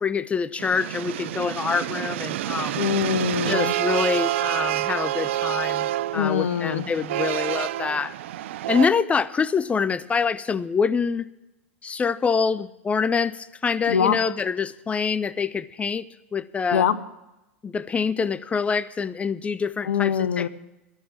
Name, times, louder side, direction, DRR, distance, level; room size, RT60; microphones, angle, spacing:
voice 1, 0.0-2.8 3.5-8.1 8.7-11.3 11.8-16.1 16.3-16.9 17.6-20.5, left 5 dB, 20° left, 15 dB, 0.5 m, -25 dB
sound 1, 0.6-8.9, right 14 dB, 65° right, 0.4 m, -28 dB
voice 2, 2.7-3.7 6.1-6.8 13.9-14.2 16.7-16.9 19.9-20.5, left 8 dB, 75° left, 11 dB, 0.7 m, -23 dB
12.0 x 7.3 x 8.7 m, 0.96 s
hypercardioid pair, 90°, 7 cm